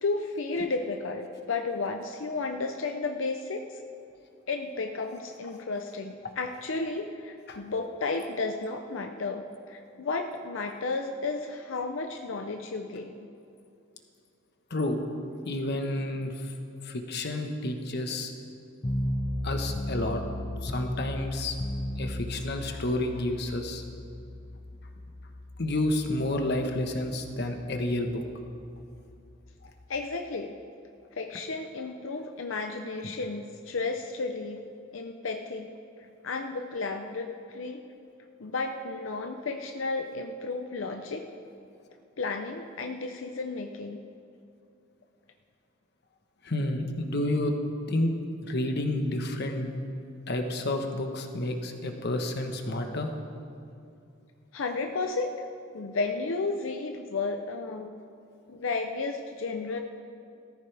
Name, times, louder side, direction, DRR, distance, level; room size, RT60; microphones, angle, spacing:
voice 1, 0.0-3.8 4.5-13.3 29.9-30.5 31.1-34.6 34.9-35.7 36.2-37.8 38.4-41.3 42.2-44.0 54.5-55.3 55.7-57.9 58.5-59.8, left 3 dB, 90° left, 4 dB, 0.7 m, -33 dB
voice 2, 15.4-16.5 16.8-18.3 19.4-20.2 20.6-21.5 22.0-23.8 25.6-28.2 33.0-33.1 46.4-47.5 47.9-48.1 48.4-49.7 50.3-53.1, left 1 dB, 60° left, 4 dB, 1.2 m, -30 dB
sound 1, 18.8-30.0, left 1 dB, 30° left, 1.0 m, -36 dB
18.5 x 14.0 x 3.4 m, 2.5 s
head